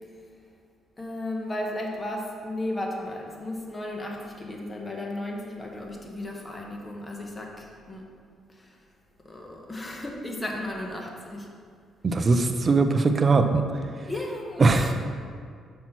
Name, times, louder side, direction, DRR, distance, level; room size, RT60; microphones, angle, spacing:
voice 1, 1.0-8.0 9.3-11.5 14.1-14.9, left 1 dB, 20° left, 0 dB, 1.2 m, -34 dB
voice 2, 12.0-13.6 14.6-14.9, right 3 dB, 35° right, 7 dB, 0.5 m, -20 dB
5.9 x 4.4 x 5.9 m, 2.1 s
cardioid pair, 90°, 0 cm